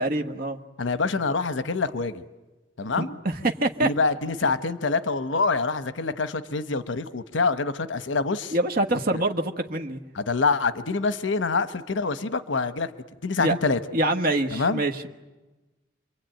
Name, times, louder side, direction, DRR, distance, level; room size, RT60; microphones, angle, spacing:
voice 1, 0.0-0.6 3.0-3.9 8.5-10.0 13.4-13.5 13.9-15.1, right 1 dB, 50° right, 4 dB, 1.3 m, -25 dB
voice 2, 0.8-2.2 2.8-3.1 3.8-8.5 10.1-12.9 13.2-13.8 14.5-14.8, left 4 dB, 85° left, 12 dB, 1.0 m, -26 dB
27.5 x 23.5 x 9.1 m, 1.1 s
head